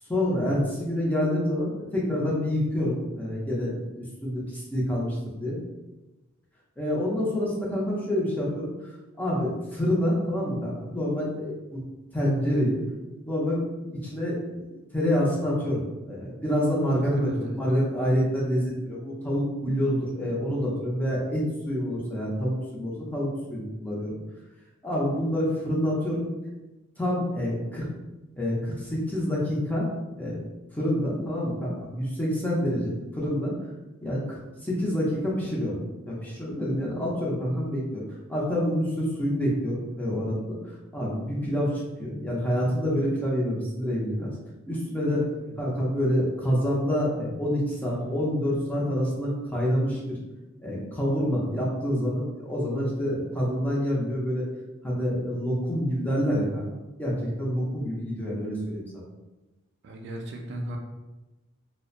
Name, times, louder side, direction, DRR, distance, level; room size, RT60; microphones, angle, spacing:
voice 1, 0.1-5.6 6.8-8.7 9.2-11.8 12.1-12.8 13.3-24.1 24.8-26.3 27.0-27.9 28.4-29.9 30.2-30.4 30.7-33.5 34.0-35.8 36.1-38.0 38.3-40.6 40.9-44.3 44.7-45.2 45.6-50.2 50.6-54.4 54.8-56.6 57.0-59.0, equal, 10° left, -5 dB, 0.5 m, -27 dB
voice 2, 17.0-17.6 45.1-45.2 45.5-45.6 59.8-60.8, right 1 dB, 55° right, 2 dB, 0.3 m, -36 dB
2.7 x 2.1 x 2.4 m, 1.1 s
head